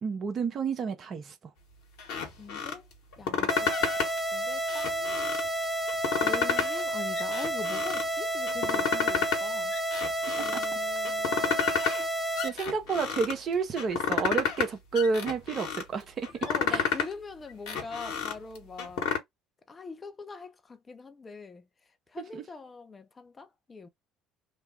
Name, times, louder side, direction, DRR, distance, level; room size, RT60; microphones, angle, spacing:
voice 1, 0.0-1.3 10.4-10.6 12.4-16.3 16.7-16.8 22.3-22.4, right 5 dB, 45° right, 1.0 m, -30 dB
sound 1, 2.0-2.8 3.1-4.2 4.6-5.5 5.9-6.8 7.2-8.1 8.5-9.4 9.7-10.7 11.0-12.0 12.4-13.3 13.8-14.7 14.9-15.8 16.2-17.1 17.5-19.2, left 7 dB, 65° left, 1.2 m, -30 dB
voice 2, 2.4-2.9 3.2-5.3 6.2-9.7 10.3-11.8 12.5-12.6 16.5-19.1 19.7-21.6 22.1-23.9, left 4 dB, 30° left, 0.7 m, -43 dB
sound 2, 3.5-12.5, right 1 dB, 5° right, 0.8 m, -31 dB
3.3 x 2.2 x 3.2 m
figure-of-eight pair, 55°, 0 cm